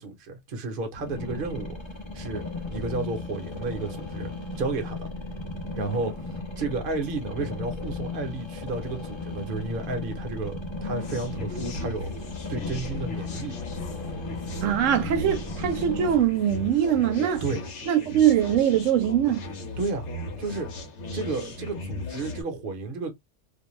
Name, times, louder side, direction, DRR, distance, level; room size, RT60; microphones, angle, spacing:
voice 1, 0.0-1.8 2.1-4.3 4.6-5.1 5.8-13.6 17.4-17.6 19.8-20.1 20.4-20.7 21.1-23.1, right 3 dB, 50° right, 0.9 m, -32 dB
sound 1, 1.0-16.2, left 3 dB, 30° left, 0.6 m, -35 dB
sound 2, 11.0-22.4, left 2 dB, 70° left, 1.0 m, -37 dB
voice 2, 14.6-17.4 17.9-19.4, right 10 dB, 85° right, 0.9 m, -22 dB
2.5 x 2.2 x 3.0 m
omnidirectional pair, 1.3 m